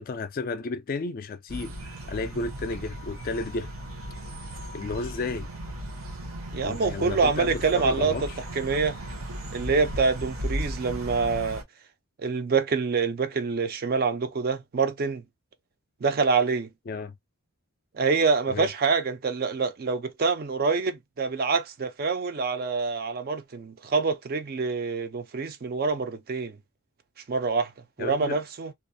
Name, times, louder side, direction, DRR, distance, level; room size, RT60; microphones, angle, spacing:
voice 1, 0.0-3.7 4.7-5.5 6.6-8.4 16.9-17.2 18.5-18.7 28.0-28.4, left 3 dB, 40° left, 0.3 m, -33 dB
sound 1, 1.5-11.6, equal, 75° right, 0.8 m, -36 dB
voice 2, 6.5-9.0 9.5-11.6 12.2-15.2 16.0-16.7 17.9-26.6 27.3-27.7 28.0-28.7, right 4 dB, 45° right, 0.4 m, -26 dB
2.4 x 2.0 x 2.6 m
head